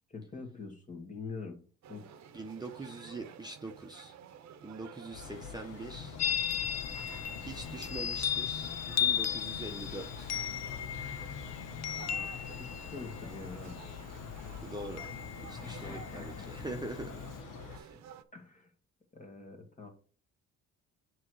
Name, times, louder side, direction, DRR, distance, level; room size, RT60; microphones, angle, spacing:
voice 1, 0.1-1.6 1.9-2.1 12.6-13.8 15.6-16.6 18.3-18.7 19.1-19.9, left 4 dB, 25° left, 2 dB, 1.9 m, -45 dB
sound 1, 1.8-18.2, right 8 dB, 65° right, 0.8 m, -52 dB
voice 2, 2.3-4.1 4.6-6.2 7.4-10.3 14.6-15.1 15.4-17.2 17.7-17.9, right 2 dB, 15° right, 3 dB, 0.8 m, -43 dB
sound 2, 5.1-17.8, left 6 dB, 85° left, 1.0 m, -46 dB
Chime, 6.2-17.4, left 9 dB, 60° left, 0.6 m, -36 dB
7.5 x 3.2 x 6.2 m, 0.42 s
cardioid pair, 90°, 30 cm